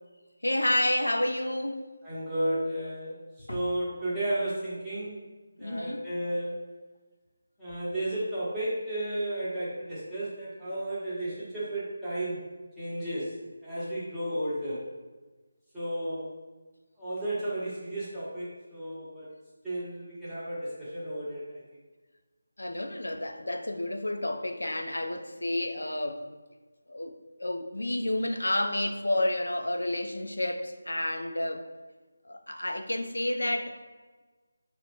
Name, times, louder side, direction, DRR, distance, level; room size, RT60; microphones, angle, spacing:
voice 1, 0.4-1.9 3.5-3.6 5.6-6.1 22.6-26.3 26.9-27.1 27.4-31.7 32.3-33.8, left 1 dB, 85° left, 0.4 m, -30 dB
voice 2, 2.0-5.2 5.6-6.5 7.6-12.5 12.8-14.9 15.7-16.4 17.0-19.3 19.6-21.6, right 1 dB, ahead, 0.9 m, -33 dB
4.9 x 2.1 x 2.8 m
figure-of-eight pair, 160°, 0 cm